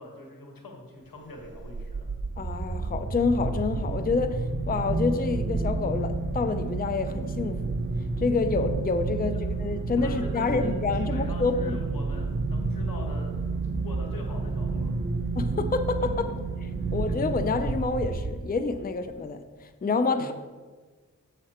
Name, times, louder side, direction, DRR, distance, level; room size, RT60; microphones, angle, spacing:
voice 1, 0.0-2.1 9.3-9.4 10.0-13.4 13.8-14.9 16.9-17.0 20.1-20.3, left 2 dB, 85° left, 1 dB, 1.6 m, -42 dB
sound 1, 1.4-18.8, right 3 dB, 35° right, 0.7 m, -30 dB
voice 2, 2.4-7.8 8.2-11.8 15.4-16.1 16.9-20.3, left 4 dB, 25° left, 9 dB, 0.5 m, -28 dB
7.6 x 6.6 x 4.3 m, 1.4 s
wide cardioid pair, 55°, 33 cm